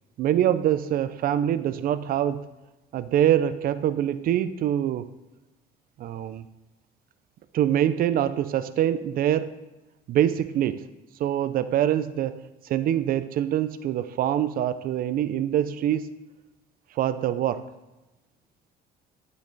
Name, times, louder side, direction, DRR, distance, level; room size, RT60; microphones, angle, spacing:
voice 1, 0.2-2.4 2.9-5.1 6.0-6.4 7.5-9.6 10.1-10.8 11.2-12.4 12.6-16.2 17.0-17.6, right 11 dB, 60° right, 13 dB, 0.4 m, -24 dB
11.0 x 5.2 x 4.0 m, 1.1 s
cardioid pair, 110°, 17 cm